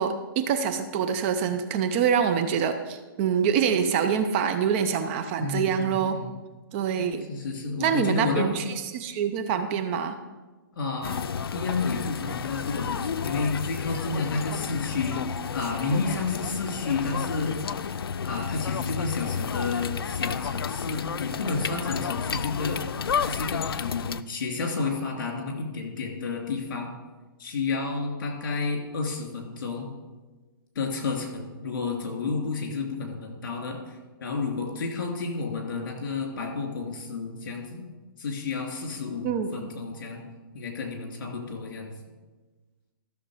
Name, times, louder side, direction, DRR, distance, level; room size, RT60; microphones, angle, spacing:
voice 1, 0.0-6.2 6.7-7.3 7.8-8.6 8.9-10.2 39.2-39.5, right 7 dB, 30° right, 8 dB, 0.6 m, -25 dB
voice 2, 5.4-6.3 7.3-8.6 10.7-15.2 15.5-17.5 18.2-22.8 23.2-26.9 27.4-29.9 30.7-37.8 38.2-40.2 40.5-41.9, left 4 dB, 60° left, 2 dB, 2.9 m, -31 dB
sound 1, 11.0-24.2, left 7 dB, 85° left, 0.5 m, -31 dB
13.5 x 6.6 x 5.0 m, 1.3 s
hypercardioid pair, 150°, 12 cm